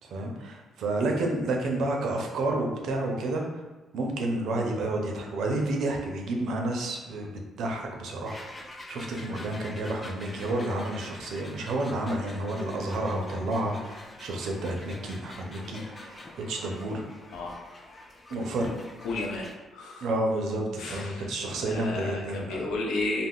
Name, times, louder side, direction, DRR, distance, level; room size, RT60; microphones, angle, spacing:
voice 1, 0.0-3.5 3.9-8.4 8.9-17.0 18.3-18.7 20.0-22.6, right 2 dB, 75° right, 1 dB, 0.5 m, -30 dB
sound 1, 8.3-19.6, left 2 dB, 30° left, 0.3 m, -46 dB
voice 2, 18.3-18.7 19.0-20.1 20.8-21.3 21.7-23.3, left 2 dB, 85° left, -1 dB, 0.5 m, -33 dB
2.3 x 2.0 x 3.5 m, 1.1 s
cardioid pair, 90°, 0 cm